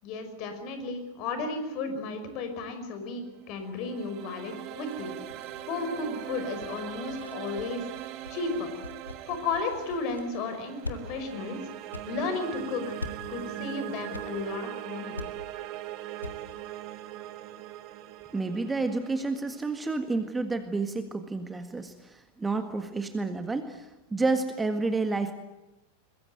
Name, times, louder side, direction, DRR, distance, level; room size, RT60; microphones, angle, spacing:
voice 1, 0.0-5.2 5.6-7.9 8.3-8.7 9.3-11.6 12.1-13.0 13.3-15.2, left 3 dB, 40° left, 8 dB, 5.5 m, -33 dB
sound 1, 3.4-20.5, right 14 dB, 40° right, 1.5 m, -41 dB
sound 2, 4.8-10.4 10.8-11.0 11.3-11.4 11.9-12.0 13.0-13.1 14.1-14.3 14.6-14.7 15.2-15.3 15.7-15.8 16.2-16.4 16.6-16.7, left 3 dB, 80° left, 1.8 m, -43 dB
voice 2, 18.3-25.4, right 3 dB, 10° right, 8 dB, 1.8 m, -30 dB
22.5 x 22.5 x 9.2 m, 1.0 s
figure-of-eight pair, 90°, 0 cm